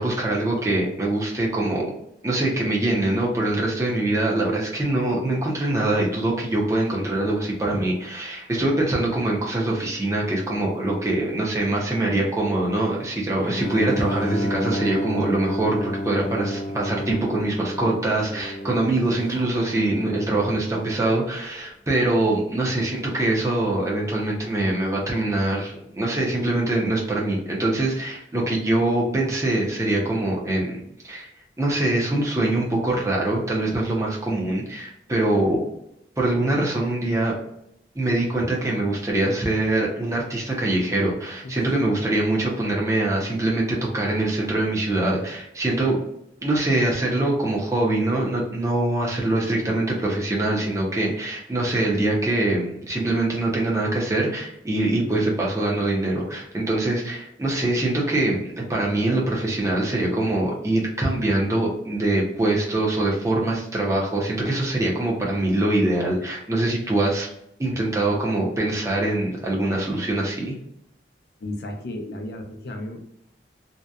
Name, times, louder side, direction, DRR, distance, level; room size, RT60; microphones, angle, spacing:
voice 1, 0.0-1.9 2.2-31.3 31.6-35.7 36.2-37.3 37.9-46.0 46.4-67.3 67.6-70.5, right 2 dB, 15° right, -3 dB, 0.6 m, -23 dB
Bowed string instrument, 13.4-20.4, equal, 80° left, 0.8 m, -30 dB
voice 2, 71.4-73.0, left 1 dB, 60° left, 4 dB, 0.5 m, -34 dB
2.7 x 2.2 x 2.3 m, 0.79 s
head